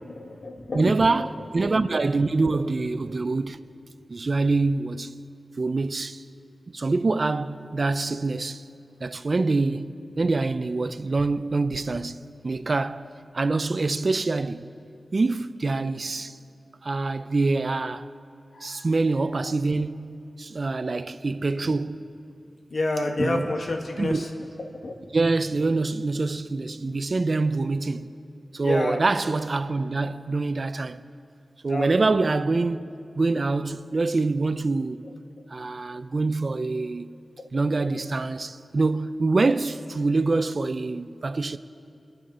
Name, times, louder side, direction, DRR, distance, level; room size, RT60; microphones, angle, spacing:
voice 1, 0.0-0.9 18.5-18.8 21.6-21.7 22.7-24.3 24.7-25.1 26.8-27.0 28.6-29.0 31.7-31.9 37.8-38.0, left 2 dB, 70° left, 1.7 m, -29 dB
voice 2, 0.7-3.6 4.1-5.1 5.6-6.2 6.7-8.6 9.0-13.1 13.3-14.7 15.1-16.4 16.8-18.1 18.6-22.0 23.0-23.6 24.0-24.2 25.1-28.1 28.5-31.0 31.6-32.9 33.1-35.0 35.5-37.1 37.5-41.6, right 3 dB, 55° right, 0.5 m, -25 dB
29.5 x 10.5 x 4.3 m
wide cardioid pair, 85°, 0 cm